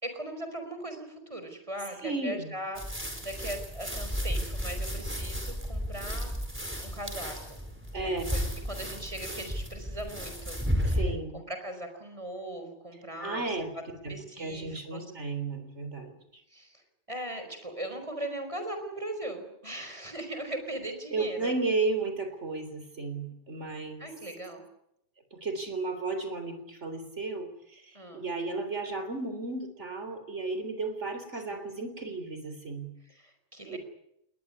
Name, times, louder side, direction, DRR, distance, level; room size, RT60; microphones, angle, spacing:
voice 1, 0.0-6.4 6.8-7.6 8.0-13.6 14.1-15.1 16.5-21.5 24.0-24.6 27.9-28.2 31.3-31.6 33.0-33.8, right 1 dB, 30° right, 7 dB, 4.7 m, -39 dB
voice 2, 2.0-2.5 7.9-8.2 10.8-11.4 13.2-13.7 14.0-16.1 21.1-24.1 25.3-32.9 33.7-33.8, right 3 dB, 85° right, 9 dB, 4.1 m, -34 dB
sound 1, 2.7-11.0, equal, 10° right, 4.6 m, -33 dB
21.0 x 19.5 x 9.8 m, 0.78 s
omnidirectional pair, 1.2 m